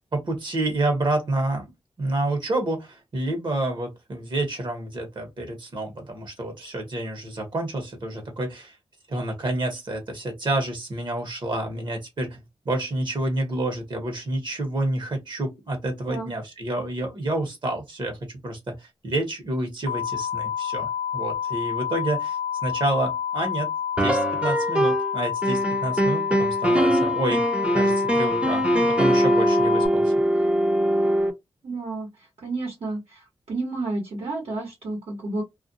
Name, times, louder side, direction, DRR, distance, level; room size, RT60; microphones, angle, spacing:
voice 1, 0.1-8.8 9.1-23.7 24.0-30.5, right 1 dB, 50° right, 1.0 m, -29 dB
sound 1, 19.9-29.9, left 8 dB, 70° left, 0.4 m, -29 dB
sound 2, 24.0-25.1 25.4-31.3, right 1 dB, 10° right, 0.5 m, -22 dB
voice 2, 31.6-32.1 32.4-35.4, right 2 dB, 80° right, 1.1 m, -31 dB
2.4 x 2.2 x 2.6 m
cardioid pair, 80°, 10 cm